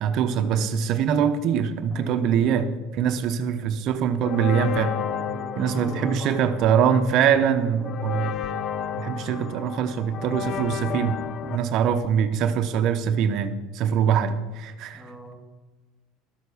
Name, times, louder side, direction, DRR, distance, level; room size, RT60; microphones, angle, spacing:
voice 1, 0.0-4.9 5.6-8.3 9.0-11.2 11.5-15.0, right 8 dB, 45° right, 8 dB, 0.8 m, -23 dB
voice 2, 1.9-2.6 3.1-3.4 5.2-7.0 11.4-12.4 14.9-15.3, equal, 5° left, 1 dB, 2.9 m, -41 dB
sound 1, 4.2-11.6, left 9 dB, 35° left, 0.4 m, -32 dB
12.5 x 8.0 x 7.0 m, 1.2 s
cardioid pair, 155°, 0 cm